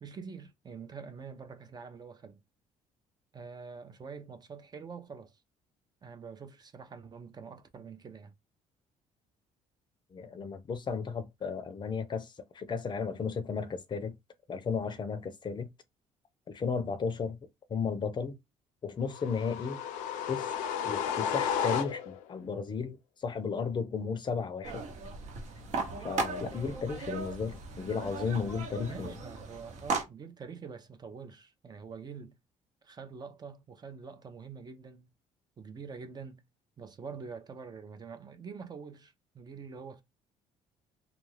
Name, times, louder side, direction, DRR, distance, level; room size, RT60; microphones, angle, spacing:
voice 1, 0.0-2.4 3.3-5.4 6.0-8.3 28.8-32.4 32.8-35.1 35.6-36.4 36.8-40.0, right 5 dB, 30° right, 0.5 m, -45 dB
voice 2, 10.1-14.1 14.5-15.7 16.5-17.4 17.7-18.4 18.8-19.8 20.3-20.5 20.8-24.8 26.0-29.1, left 5 dB, 35° left, 0.5 m, -34 dB
sound 1, 19.1-22.3, left 8 dB, 85° left, 0.4 m, -33 dB
sound 2, 24.6-30.0, right 4 dB, 65° right, 0.9 m, -37 dB
2.4 x 2.2 x 3.2 m
cardioid pair, 90°, 13 cm